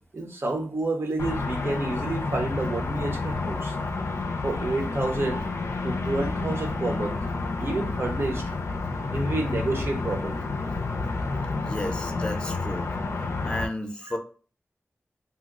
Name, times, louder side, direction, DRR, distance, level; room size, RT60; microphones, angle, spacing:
voice 1, 0.1-3.8 4.4-5.5 5.8-7.2 7.6-8.5 9.1-10.5 14.0-14.1, right 2 dB, 60° right, 0.7 m, -29 dB
sound 1, 1.2-13.7, left 3 dB, 85° left, 0.4 m, -30 dB
voice 2, 11.6-12.9 13.4-14.2, left 1 dB, 20° left, 0.6 m, -32 dB
2.8 x 2.0 x 3.6 m
wide cardioid pair, 70°, 5 cm